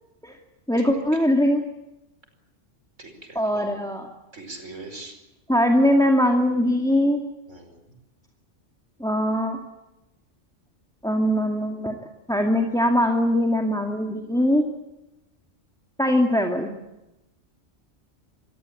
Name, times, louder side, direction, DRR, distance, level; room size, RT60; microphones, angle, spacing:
voice 1, 0.7-1.6 3.4-4.1 5.5-7.2 9.0-9.6 11.0-12.0 12.3-14.7 16.0-16.8, equal, 5° left, 3 dB, 2.2 m, -21 dB
voice 2, 3.0-3.7 4.3-5.2 7.5-8.0, right 2 dB, 85° right, 5 dB, 5.4 m, -41 dB
26.5 x 21.5 x 8.5 m, 0.97 s
omnidirectional pair, 1.2 m